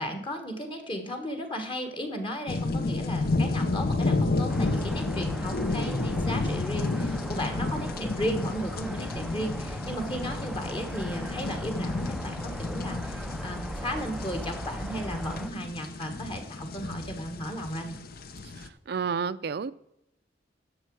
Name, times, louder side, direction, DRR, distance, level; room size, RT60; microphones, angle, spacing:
voice 1, 0.0-18.0, equal, 30° left, 1.5 m, -35 dB
sound 1, 2.5-18.7, left 2 dB, 55° left, 0.8 m, -31 dB
sound 2, 4.5-15.5, equal, ahead, 0.4 m, -39 dB
voice 2, 18.6-19.7, right 6 dB, 65° right, 0.4 m, -31 dB
11.0 x 7.0 x 4.7 m
head